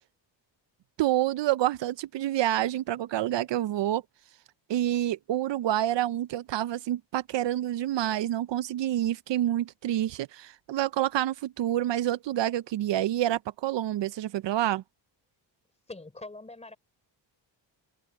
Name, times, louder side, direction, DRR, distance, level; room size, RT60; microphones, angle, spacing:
voice 1, 1.0-4.0 4.7-14.8, right 13 dB, 70° right, 0.6 m, -28 dB
voice 2, 15.9-16.8, left 2 dB, 15° left, 3.5 m, -43 dB
wide cardioid pair, 175°, 45 cm